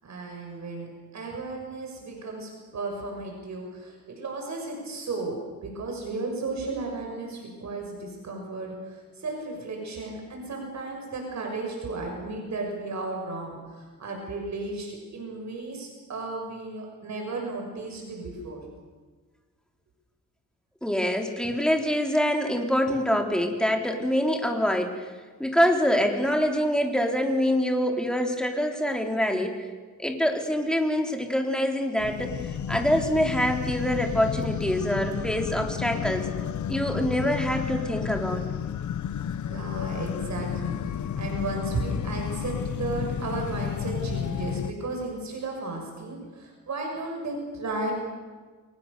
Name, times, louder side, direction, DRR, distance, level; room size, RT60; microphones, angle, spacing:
voice 1, 0.0-18.6 39.4-47.9, right 3 dB, 60° right, 1 dB, 6.6 m, -34 dB
voice 2, 20.8-25.1 25.4-29.7 30.0-32.4 32.7-36.3 36.7-38.4, equal, ahead, 3 dB, 3.8 m, -25 dB
sound 1, 32.0-44.7, left 9 dB, 65° left, 1.0 m, -32 dB
29.5 x 23.5 x 6.9 m, 1.4 s
cardioid pair, 110°, 32 cm